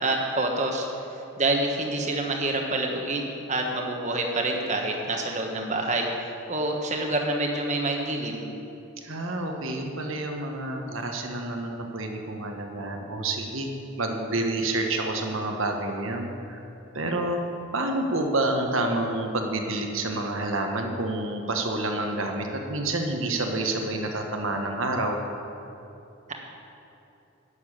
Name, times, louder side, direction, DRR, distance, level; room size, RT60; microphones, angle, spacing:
voice 1, 0.0-0.9 1.4-8.4, right 2 dB, 30° right, 2 dB, 1.3 m, -27 dB
voice 2, 9.0-13.7 14.0-16.6 16.9-17.4 17.7-25.2, right 2 dB, 65° right, 3 dB, 1.4 m, -28 dB
11.5 x 7.2 x 8.7 m, 2.9 s
head